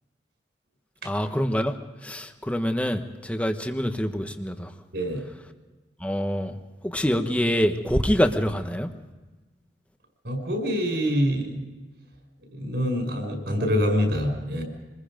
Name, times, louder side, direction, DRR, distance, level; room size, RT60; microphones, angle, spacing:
voice 1, 1.0-4.7 6.0-6.6 6.8-8.9, equal, 10° left, 6 dB, 1.3 m, -25 dB
voice 2, 4.9-5.2 10.2-11.7 12.5-14.6, equal, 65° right, 3 dB, 6.1 m, -25 dB
26.5 x 21.0 x 5.2 m, 1.2 s
head